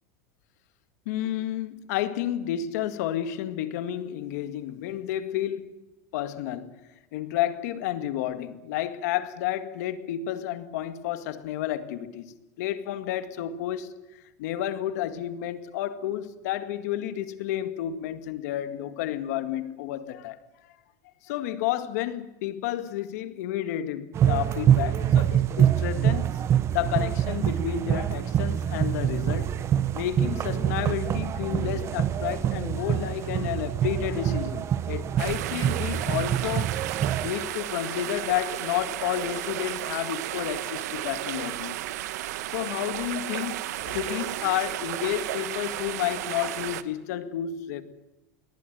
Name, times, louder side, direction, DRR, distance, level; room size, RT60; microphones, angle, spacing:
voice 1, 1.1-5.8 6.1-6.8 7.1-13.9 14.4-20.4 21.2-26.3 26.7-29.5 29.9-36.7 37.2-41.8 42.5-47.8, left 12 dB, 75° left, 1.9 m, -31 dB
sound 1, 24.1-37.3, right 10 dB, 30° right, 0.8 m, -25 dB
sound 2, 35.2-46.8, right 15 dB, 85° right, 1.2 m, -33 dB
21.5 x 19.0 x 9.3 m
supercardioid pair, 140°, 9 cm